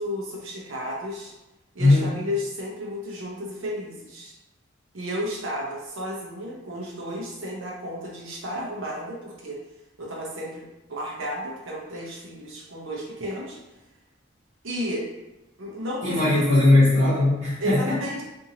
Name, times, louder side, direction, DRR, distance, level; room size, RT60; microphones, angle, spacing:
voice 1, 0.0-1.3 1.7-4.3 4.9-9.6 10.0-13.6 14.6-15.1 15.6-16.5 17.6-18.2, equal, 75° right, -3 dB, 0.7 m, -33 dB
voice 2, 1.8-2.1 16.0-18.0, left 2 dB, 50° right, -13 dB, 1.2 m, -19 dB
2.7 x 2.6 x 2.8 m, 1.0 s
head